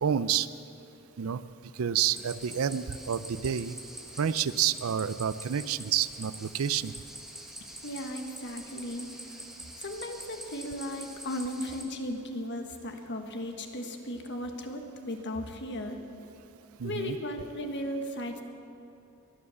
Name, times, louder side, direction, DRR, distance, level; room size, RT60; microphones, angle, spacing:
voice 1, 0.0-0.5 1.2-1.4 1.7-3.8 4.2-6.9 16.8-17.2, right 8 dB, 75° right, 16 dB, 0.5 m, -29 dB
sound 1, 2.1-11.8, right 1 dB, ahead, 1.5 m, -45 dB
voice 2, 7.8-9.1 9.8-16.0 16.8-18.4, left 1 dB, 55° left, 5 dB, 1.5 m, -36 dB
22.5 x 8.7 x 7.0 m, 2.7 s
head